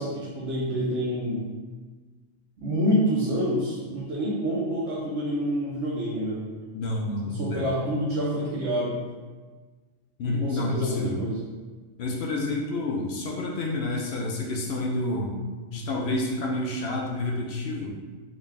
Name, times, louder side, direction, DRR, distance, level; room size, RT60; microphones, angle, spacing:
voice 1, 0.0-1.4 2.6-6.4 7.2-9.0 10.3-11.4, equal, 65° right, -7 dB, 1.0 m, -27 dB
voice 2, 6.7-7.7 10.2-11.2 12.0-15.4 15.7-17.9, left 2 dB, 65° left, -1 dB, 0.7 m, -29 dB
4.0 x 2.4 x 3.3 m, 1.4 s
omnidirectional pair, 1.3 m